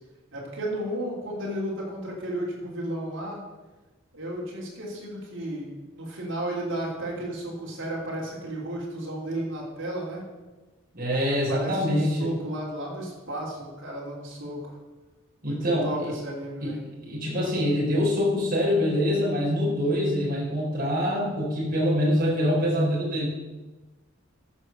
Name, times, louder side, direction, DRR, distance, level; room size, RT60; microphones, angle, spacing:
voice 1, 0.3-3.4 4.1-10.2 11.1-14.7 15.4-16.8, right 1 dB, 65° right, -4 dB, 3.3 m, -33 dB
voice 2, 10.9-12.3 15.4-16.1 16.6-16.7 17.1-23.3, equal, 45° right, -5 dB, 4.1 m, -25 dB
14.0 x 4.8 x 6.7 m, 1.2 s
head